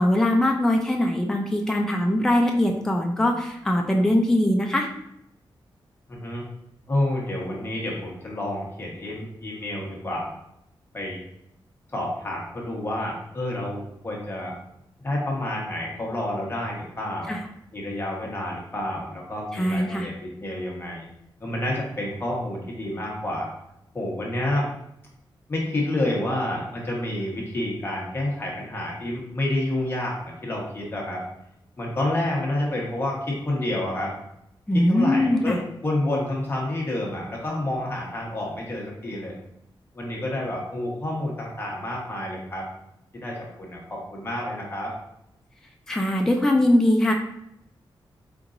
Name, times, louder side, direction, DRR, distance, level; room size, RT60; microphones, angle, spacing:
voice 1, 0.0-4.9 17.3-17.4 19.5-20.1 34.7-35.6 45.9-47.1, left 1 dB, 5° left, 1 dB, 0.4 m, -21 dB
voice 2, 6.1-6.4 6.9-10.3 10.9-11.2 11.9-14.5 15.0-17.3 17.7-21.1 21.4-23.5 23.9-24.7 25.5-31.2 31.8-34.1 34.7-39.3 39.9-42.7 43.2-44.9, left 1 dB, 25° left, -3 dB, 1.2 m, -29 dB
4.4 x 3.9 x 2.6 m, 0.78 s
wide cardioid pair, 160°, 9 cm